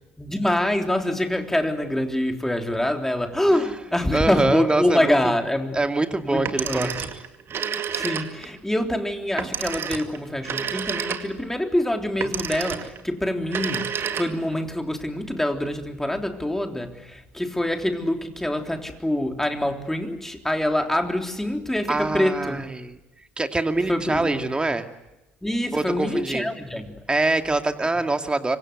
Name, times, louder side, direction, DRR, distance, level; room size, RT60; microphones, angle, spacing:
voice 1, 0.2-5.8 6.2-6.9 7.9-13.9 14.2-22.7 23.9-24.4 25.4-27.0, left 1 dB, 5° left, 4 dB, 3.5 m, -25 dB
voice 2, 4.1-5.2 5.7-7.1 21.9-23.0 23.4-24.9 25.7-26.5 27.1-28.6, right 2 dB, 15° right, 7 dB, 2.4 m, -24 dB
Telephone, 6.4-8.6 9.4-11.5 12.2-13.0 13.4-14.6, right 7 dB, 40° right, 2.2 m, -30 dB
26.0 x 25.0 x 8.1 m, 0.99 s
figure-of-eight pair, 55°, 6 cm